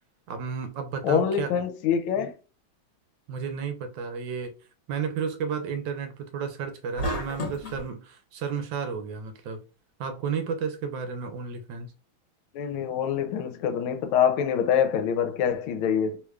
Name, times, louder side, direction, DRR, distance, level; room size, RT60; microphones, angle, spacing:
voice 1, 0.3-1.5 3.3-4.5 4.9-9.6 10.0-11.9, right 6 dB, 75° right, 1.2 m, -32 dB
voice 2, 1.0-2.3 12.5-16.2, left 8 dB, 90° left, 1.5 m, -25 dB
sound 1, 7.0-7.8, equal, 45° left, 1.7 m, -31 dB
3.4 x 3.2 x 2.3 m
omnidirectional pair, 2.3 m